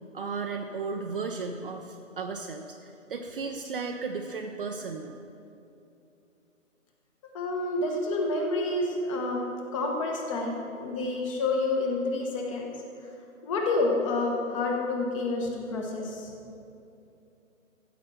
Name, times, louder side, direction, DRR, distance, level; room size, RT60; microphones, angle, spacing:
voice 1, 0.1-5.2, right 4 dB, 45° right, 2 dB, 0.7 m, -35 dB
voice 2, 7.3-9.4 9.7-10.5 10.8-12.6 13.4-16.3, left 2 dB, 25° left, 1 dB, 1.3 m, -28 dB
14.5 x 5.3 x 7.0 m, 2.7 s
hypercardioid pair, 150°, 39 cm